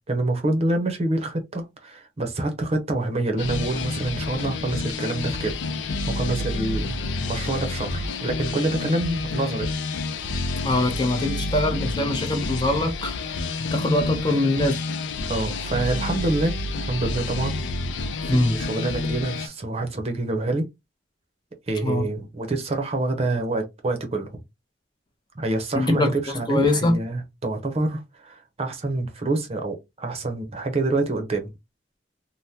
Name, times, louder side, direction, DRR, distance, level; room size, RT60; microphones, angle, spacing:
voice 1, 0.1-5.6 5.9-9.7 15.3-16.6 16.9-17.6 18.2-20.7 21.7-24.3 25.4-31.5, right 2 dB, 35° right, 0.7 m, -26 dB
sound 1, 3.4-19.5, left 3 dB, 85° left, 0.4 m, -29 dB
voice 2, 10.6-13.3 13.7-14.8 18.3-18.5 21.8-22.1 25.7-26.1 26.5-27.0, left 2 dB, 25° left, 0.6 m, -23 dB
3.4 x 2.1 x 2.7 m
head